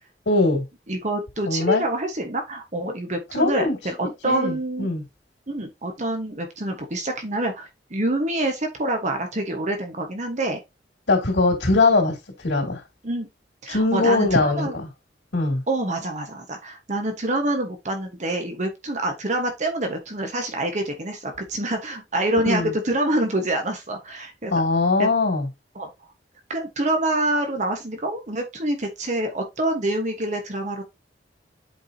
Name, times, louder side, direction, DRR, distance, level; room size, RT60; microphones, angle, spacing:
voice 1, 0.3-0.6 1.5-1.8 3.3-3.8 4.2-5.0 11.1-12.1 12.4-12.8 13.7-14.7 15.3-15.6 22.4-22.7 24.5-25.5, left 3 dB, 85° left, 2.6 m, -21 dB
voice 2, 0.9-4.9 5.5-10.6 13.0-13.3 13.6-14.8 15.7-24.5 25.0-25.1 25.7-25.9 26.5-30.8, right 1 dB, 40° right, 1.2 m, -26 dB
8.0 x 4.7 x 2.7 m
head